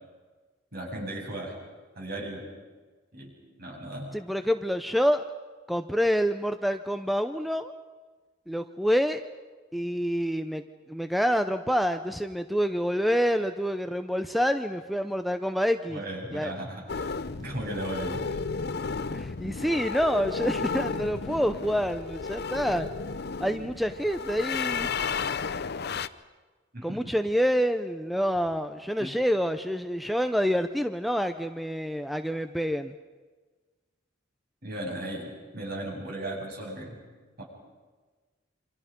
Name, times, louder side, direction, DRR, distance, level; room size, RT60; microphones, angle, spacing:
voice 1, 0.7-1.5 2.0-2.5 3.1-4.2 15.9-17.1 17.4-18.4 26.7-27.2 29.0-29.2 34.6-37.0 37.4-37.5, right 1 dB, 55° right, -1 dB, 7.7 m, -36 dB
voice 2, 4.1-5.2 5.7-7.7 8.5-9.2 9.7-10.6 10.9-16.0 16.3-16.5 19.1-22.9 23.4-24.9 26.8-33.0, equal, ahead, 9 dB, 0.6 m, -27 dB
sound 1, 16.9-26.1, left 5 dB, 55° left, 0.7 m, -33 dB
28.0 x 26.0 x 5.3 m, 1.3 s
head